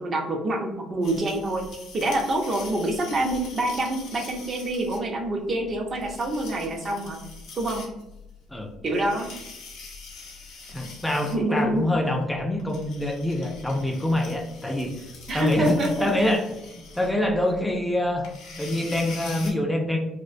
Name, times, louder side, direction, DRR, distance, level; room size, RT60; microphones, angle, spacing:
voice 1, 0.0-1.6 1.9-7.2 7.6-7.8 8.8-9.3 11.3-11.8 15.3-16.1, right 1 dB, 45° right, 1 dB, 0.6 m, -26 dB
sound 1, 1.0-19.5, left 4 dB, 70° left, 0.6 m, -43 dB
voice 2, 10.7-15.0 15.3-16.4 16.7-18.3 18.5-20.0, left 1 dB, 10° left, 2 dB, 0.4 m, -25 dB
2.3 x 2.1 x 2.5 m, 0.91 s
hypercardioid pair, 65°, 0 cm